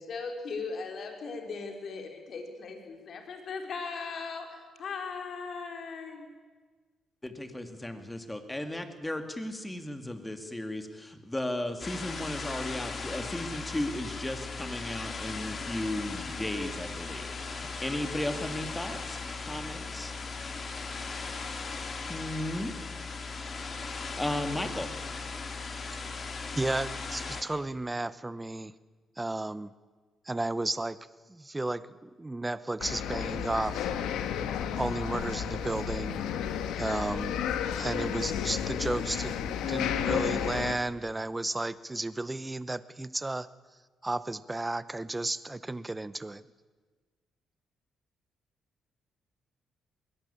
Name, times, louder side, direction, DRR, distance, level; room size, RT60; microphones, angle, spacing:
voice 1, 0.0-6.3, left 4 dB, 55° left, 3 dB, 4.1 m, -38 dB
voice 2, 7.2-20.1 22.1-22.7 24.2-24.9, left 1 dB, 10° left, 7 dB, 2.6 m, -35 dB
sound 1, 11.8-27.4, left 4 dB, 40° left, 2.6 m, -38 dB
voice 3, 26.6-28.7 29.2-29.7 30.3-31.0 31.3-33.9 34.8-36.2 36.8-37.4 37.7-43.5 44.0-46.4, right 2 dB, 15° right, 16 dB, 0.8 m, -33 dB
sound 2, 32.8-40.8, left 8 dB, 90° left, 1.5 m, -32 dB
21.5 x 17.5 x 8.6 m, 1.4 s
cardioid pair, 90°, 0 cm